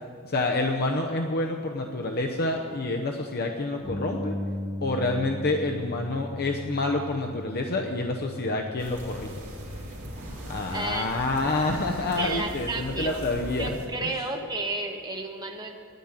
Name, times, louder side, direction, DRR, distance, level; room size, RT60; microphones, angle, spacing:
voice 1, 0.2-4.3 4.8-9.3 10.4-14.1, left 2 dB, 45° left, 2 dB, 0.8 m, -28 dB
Bass guitar, 3.8-10.1, left 1 dB, 5° left, 2.8 m, -37 dB
sound 1, 8.8-13.9, right 1 dB, 55° right, 3.3 m, -39 dB
voice 2, 10.7-11.4 12.2-13.2 13.6-15.8, right 2 dB, 20° right, 1 dB, 1.3 m, -32 dB
10.0 x 9.3 x 8.9 m, 2.3 s
head